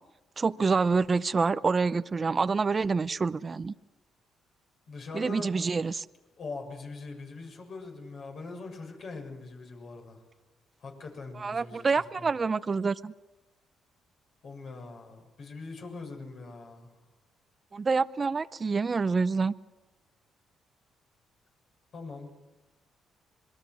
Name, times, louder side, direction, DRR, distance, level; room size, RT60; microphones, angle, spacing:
voice 1, 0.4-3.7 5.1-6.0 11.4-13.1 17.7-19.5, right 4 dB, 35° right, 0.7 m, -27 dB
voice 2, 4.9-5.5 6.4-10.2 10.8-12.4 14.4-16.9 21.9-22.3, left 3 dB, 60° left, 7.2 m, -42 dB
26.5 x 21.0 x 6.2 m
cardioid pair, 90°, 0 cm